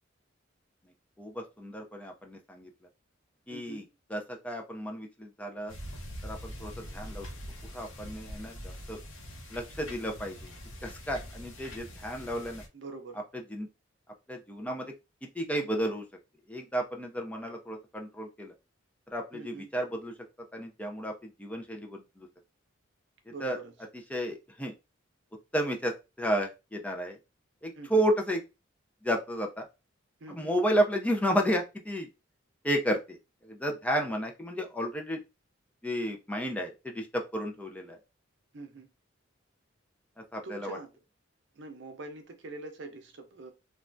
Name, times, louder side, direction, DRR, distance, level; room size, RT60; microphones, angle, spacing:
voice 1, 1.2-2.7 3.5-3.8 4.1-5.7 6.2-7.3 7.7-9.0 9.5-10.5 10.8-12.6 13.5-13.7 14.3-14.9 15.2-16.0 16.5-18.5 19.1-20.1 20.5-22.3 23.3-23.6 24.1-24.7 25.5-27.2 27.6-28.4 29.0-29.7 30.3-32.1 32.6-33.2 33.4-35.2 35.8-38.0 40.2-40.8, equal, 5° left, 0.4 m, -32 dB
voice 2, 3.5-3.9 12.7-13.2 19.3-19.7 23.3-23.7 27.7-28.0 30.2-30.5 38.5-38.9 40.4-40.9 41.5-43.5, right 3 dB, 65° right, 0.6 m, -44 dB
sound 1, 5.7-12.7, equal, 90° left, 0.9 m, -43 dB
3.1 x 2.3 x 2.5 m
head